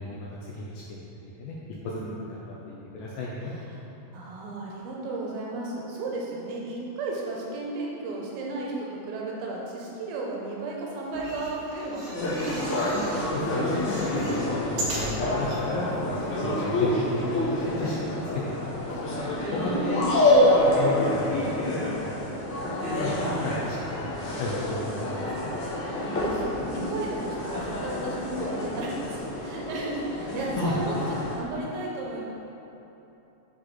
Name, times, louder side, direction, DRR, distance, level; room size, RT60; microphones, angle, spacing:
voice 1, 0.0-1.6 1.8-3.5 13.3-19.2 19.5-19.8 20.4-22.1 22.5-22.6 22.9-24.1 24.4-25.5 30.6-30.7, left 2 dB, 85° left, -5 dB, 1.9 m, -34 dB
voice 2, 4.1-13.3 19.6-20.1 26.1-32.2, right 2 dB, 80° right, -3 dB, 2.4 m, -34 dB
sound 1, 11.0-13.3 13.6-15.6 16.2-16.3 16.5-16.6, right 1 dB, 60° right, 1.8 m, -37 dB
sound 2, 12.1-31.4, left 1 dB, 60° left, 2.3 m, -27 dB
7.6 x 4.2 x 4.0 m, 3.0 s
omnidirectional pair, 4.7 m